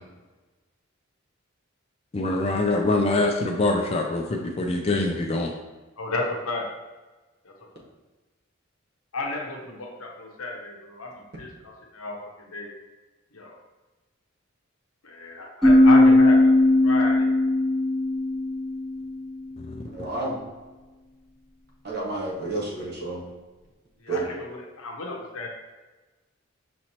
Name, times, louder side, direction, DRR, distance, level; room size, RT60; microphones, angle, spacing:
voice 1, 2.1-5.5 19.7-19.8, left 2 dB, 30° left, 2 dB, 0.3 m, -24 dB
voice 2, 6.0-6.7 7.4-7.8 9.1-12.7 13.3-13.6 15.0-17.3 24.0-25.5, left 2 dB, 85° left, 0 dB, 0.9 m, -33 dB
sound 1, 15.6-19.2, left 1 dB, ahead, 1.2 m, -18 dB
voice 3, 19.9-20.4 21.8-23.2 24.1-24.3, right 2 dB, 50° right, -3 dB, 1.0 m, -30 dB
6.1 x 2.9 x 2.9 m, 1.2 s
head